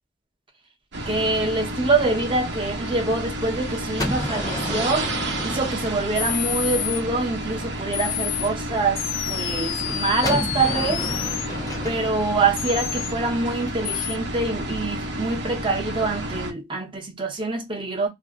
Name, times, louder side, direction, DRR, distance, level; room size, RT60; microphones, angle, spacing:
sound 1, 0.9-16.5, right 1 dB, 65° right, 0.8 m, -31 dB
voice 1, 1.1-5.1 5.4-9.0 9.3-11.1 11.8-18.1, right 3 dB, 25° right, 1.0 m, -25 dB
Gunshot gunfire, 4.0-6.8 10.2-14.0, left 1 dB, 20° left, 0.9 m, -32 dB
sound 2, 6.2-7.0 7.9-8.5 9.0-11.5 12.6-13.1 13.8-14.2, left 15 dB, 80° left, 0.3 m, -29 dB
2.7 x 2.2 x 3.6 m
head